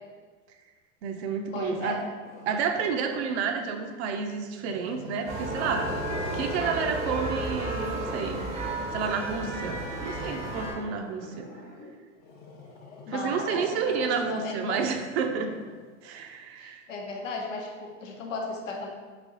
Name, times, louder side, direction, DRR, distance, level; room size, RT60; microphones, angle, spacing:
voice 1, 1.0-2.0 2.5-5.9 6.3-8.5 8.9-11.5 13.1-15.5 16.0-16.8, right 6 dB, 60° right, 5 dB, 0.6 m, -30 dB
voice 2, 1.5-2.0 13.1-13.6 14.0-14.8 16.6-18.9, left 3 dB, 85° left, 0 dB, 0.9 m, -35 dB
Growling, 2.2-4.0 4.5-8.7 9.7-16.2, left 3 dB, 25° left, 0.7 m, -45 dB
sound 1, 5.2-10.7, right 2 dB, 15° right, 0.7 m, -32 dB
3.4 x 3.1 x 3.7 m, 1.5 s
hypercardioid pair, 110°, 37 cm